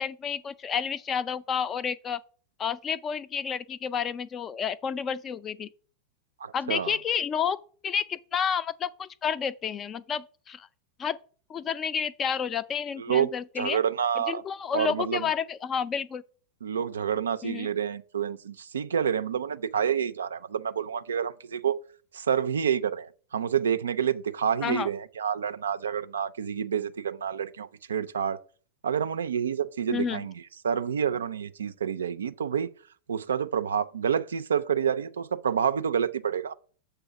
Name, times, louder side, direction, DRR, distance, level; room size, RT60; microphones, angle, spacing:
voice 1, 0.0-2.2 2.6-5.7 6.5-7.6 7.8-10.7 11.0-11.2 11.5-13.8 14.2-16.2 17.4-17.7 24.6-24.9 29.9-30.3, left 7 dB, 25° left, 0.4 m, -30 dB
voice 2, 6.4-7.0 13.0-13.3 13.6-14.4 14.7-15.3 16.6-21.8 22.1-28.4 28.8-32.7 33.1-36.5, right 8 dB, 70° right, 0.4 m, -28 dB
6.9 x 3.3 x 5.8 m
figure-of-eight pair, 90°, 0 cm